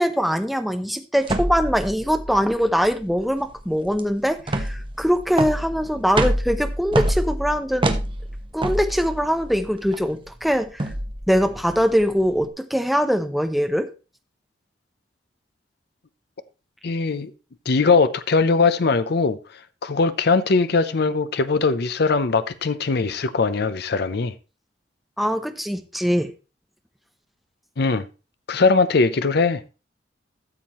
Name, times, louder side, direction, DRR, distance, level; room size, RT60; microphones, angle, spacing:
voice 1, 0.0-8.0 8.5-10.9 11.3-13.9 25.2-26.3, equal, ahead, 0.8 m, -22 dB
sound 1, 1.2-12.4, right 1 dB, 30° right, 1.0 m, -27 dB
voice 2, 16.8-17.3 17.7-19.4 19.8-24.3 27.8-28.1 28.5-29.6, left 4 dB, 60° left, 0.6 m, -20 dB
13.0 x 7.3 x 3.0 m
head